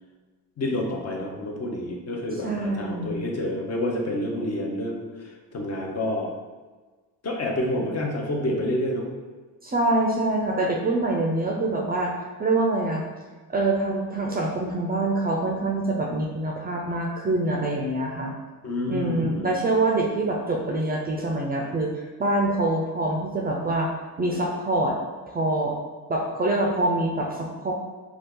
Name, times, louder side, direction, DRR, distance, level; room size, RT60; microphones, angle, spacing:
voice 1, 0.6-5.1 5.5-6.3 7.2-9.1 18.6-19.5, left 1 dB, 40° left, 1 dB, 0.6 m, -28 dB
voice 2, 2.4-3.2 9.6-12.1 12.4-13.0 13.5-18.3 18.9-23.9 24.2-25.0 25.3-25.7 26.1-27.7, right 2 dB, 25° right, -1 dB, 0.4 m, -25 dB
2.7 x 2.3 x 3.6 m, 1.3 s
cardioid pair, 85°, 39 cm